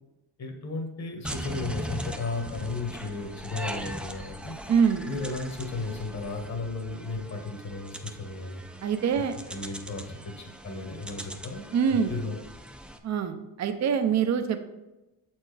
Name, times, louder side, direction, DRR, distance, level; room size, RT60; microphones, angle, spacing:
voice 1, 0.4-4.5 5.1-8.6 9.5-12.4, left 3 dB, 40° left, 3 dB, 1.3 m, -35 dB
sound 1, 1.2-13.0, equal, 5° right, 0.4 m, -40 dB
voice 2, 4.7-5.0 8.8-9.3 11.7-12.1 13.0-14.6, right 7 dB, 40° right, 8 dB, 0.6 m, -24 dB
7.1 x 4.5 x 3.3 m, 1.0 s
cardioid pair, 95°, 41 cm